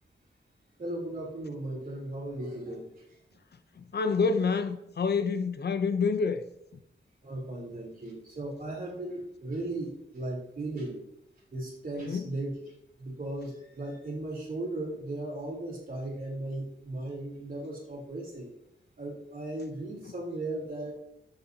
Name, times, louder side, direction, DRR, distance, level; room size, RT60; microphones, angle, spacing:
voice 1, 0.8-2.9 7.2-11.0 11.5-12.7 13.0-18.5 19.0-20.9, right 2 dB, 45° right, 3.3 m, -36 dB
voice 2, 3.9-6.4 12.0-12.2, left 5 dB, 55° left, 0.6 m, -27 dB
12.5 x 6.9 x 2.8 m
wide cardioid pair, 125°, 20 cm